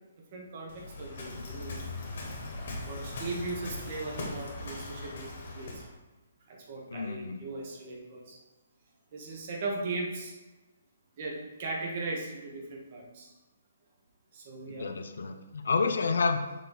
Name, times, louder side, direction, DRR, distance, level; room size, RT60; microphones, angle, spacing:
voice 1, 0.3-1.8 2.8-5.8 6.5-8.4 9.1-10.3 11.2-13.3 14.3-14.9, right 3 dB, 35° right, -1 dB, 1.2 m, -38 dB
Waves surf, 0.7-5.9, left 2 dB, 45° left, 1.5 m, -40 dB
voice 2, 6.9-7.4 14.7-16.4, left 4 dB, 75° left, 7 dB, 0.7 m, -29 dB
6.4 x 3.9 x 4.0 m, 1.1 s
hypercardioid pair, 175°, 0 cm